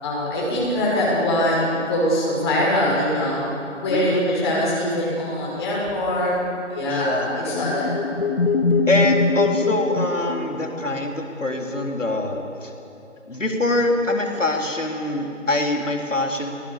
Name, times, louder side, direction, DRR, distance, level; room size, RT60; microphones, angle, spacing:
voice 1, 0.0-3.4 3.7-6.3 6.7-8.2, left 1 dB, 20° left, -6 dB, 6.5 m, -23 dB
voice 2, 3.9-4.2 6.9-7.3 8.9-12.7 13.3-16.5, left 2 dB, 75° left, 2 dB, 3.9 m, -24 dB
sound 1, 7.1-11.0, left 4 dB, 45° left, 1.5 m, -23 dB
28.5 x 18.5 x 7.3 m, 2.9 s
figure-of-eight pair, 155°, 38 cm